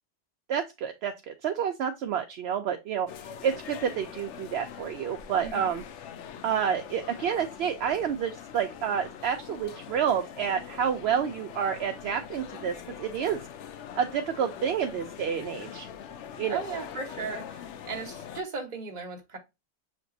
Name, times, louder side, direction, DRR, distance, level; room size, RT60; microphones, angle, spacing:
voice 1, 0.5-3.1 3.4-5.8 6.4-13.4 14.0-15.9 16.4-16.6, right 8 dB, 70° right, 0.8 m, -29 dB
sound 1, 3.1-18.4, left 8 dB, 85° left, 0.9 m, -43 dB
voice 2, 5.4-5.7 16.5-19.4, right 4 dB, 40° right, 1.1 m, -37 dB
6.2 x 3.0 x 2.6 m
omnidirectional pair, 1.2 m